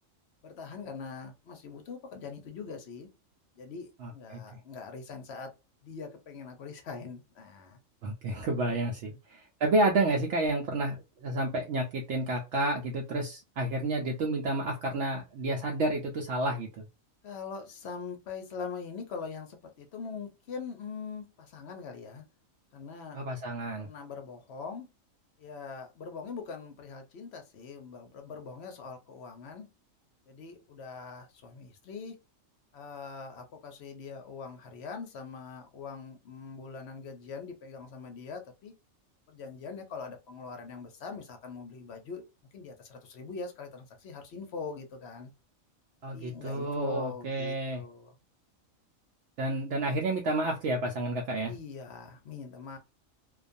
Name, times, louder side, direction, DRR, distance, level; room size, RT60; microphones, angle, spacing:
voice 1, 0.4-3.1 3.6-5.5 5.8-7.8 9.1-9.2 17.2-22.2 22.7-23.2 23.8-24.9 25.4-29.7 30.3-32.2 32.7-38.7 39.3-42.2 42.5-45.3 46.1-48.2 51.4-52.8, left 5 dB, 60° left, 0.8 m, -42 dB
voice 2, 8.0-11.0 11.2-16.8 23.1-23.9 46.0-47.8 49.4-51.5, right 2 dB, 65° right, 0.8 m, -30 dB
2.4 x 2.3 x 2.5 m
omnidirectional pair, 1.4 m